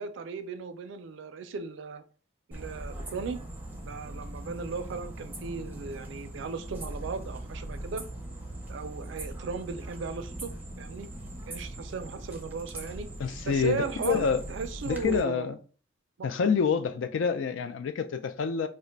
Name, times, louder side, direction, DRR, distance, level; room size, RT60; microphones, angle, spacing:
voice 1, 0.0-2.0 2.5-3.4 3.8-8.1 8.7-10.5 10.8-11.1 11.5-13.1 13.5-15.5 16.2-16.3, right 5 dB, 65° right, 0.4 m, -36 dB
sound 1, 2.5-15.2, right 1 dB, 10° right, 0.5 m, -40 dB
voice 2, 13.2-14.4 14.9-15.6 16.2-18.7, left 6 dB, 70° left, 0.4 m, -27 dB
2.4 x 2.1 x 3.8 m
head